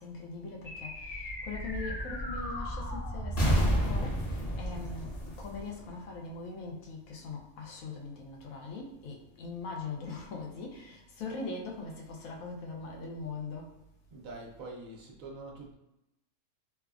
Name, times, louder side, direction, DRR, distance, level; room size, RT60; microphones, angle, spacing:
voice 1, 0.0-13.7, left 3 dB, 75° left, 0 dB, 1.0 m, -41 dB
sound 1, 0.6-6.3, equal, 45° left, 1.0 m, -32 dB
voice 2, 14.1-15.7, right 2 dB, 70° right, 0 dB, 1.0 m, -45 dB
3.3 x 2.0 x 2.3 m, 0.91 s
omnidirectional pair, 1.5 m